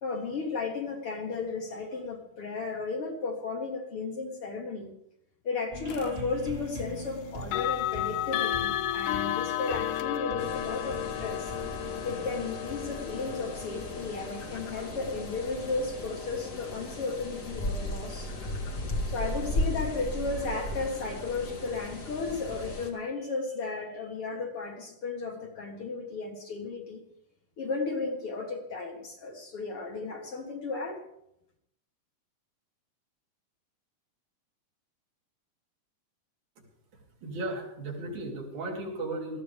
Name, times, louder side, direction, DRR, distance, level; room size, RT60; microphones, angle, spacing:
voice 1, 0.0-4.9 5.4-11.5 12.0-18.3 19.1-27.0 27.6-31.0, left 4 dB, 50° left, 1 dB, 2.3 m, -34 dB
sound 1, 5.7-17.5, equal, 25° right, 2.2 m, -44 dB
sound 2, 5.9-6.1 7.4-18.3, left 13 dB, 85° left, 2.2 m, -34 dB
sound 3, 10.4-22.9, left 1 dB, 35° left, 1.5 m, -36 dB
voice 2, 36.9-39.4, right 2 dB, 70° right, -1 dB, 4.1 m, -36 dB
20.5 x 14.0 x 3.5 m, 0.76 s
omnidirectional pair, 3.5 m